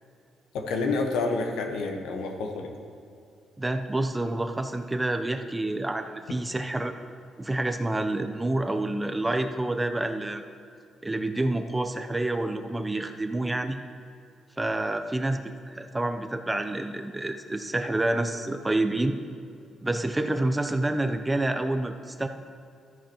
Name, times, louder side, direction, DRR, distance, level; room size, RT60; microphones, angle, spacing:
voice 1, 0.5-2.7, left 3 dB, 85° left, 4 dB, 1.0 m, -28 dB
voice 2, 3.6-6.9 7.4-10.4 11.0-13.8 14.6-19.2 19.8-22.3, right 2 dB, 15° right, 7 dB, 0.6 m, -28 dB
13.0 x 9.8 x 3.0 m, 2.5 s
cardioid pair, 90°, 0 cm